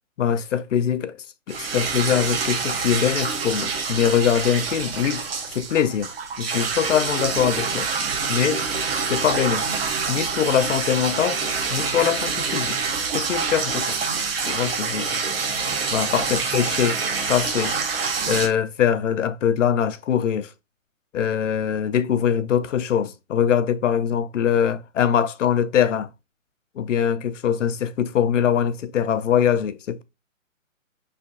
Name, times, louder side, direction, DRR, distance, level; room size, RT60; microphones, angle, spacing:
voice 1, 0.2-1.2 1.5-5.2 5.5-7.9 8.3-8.6 9.1-9.7 10.1-11.4 11.7-12.8 13.1-14.0 14.4-15.2 15.9-17.7 18.3-20.5 21.1-26.1 26.8-30.0, left 9 dB, 65° left, 0.5 m, -22 dB
sound 1, 1.5-18.5, right 5 dB, 45° right, 0.7 m, -26 dB
6.1 x 3.1 x 2.5 m
hypercardioid pair, 150°, 40 cm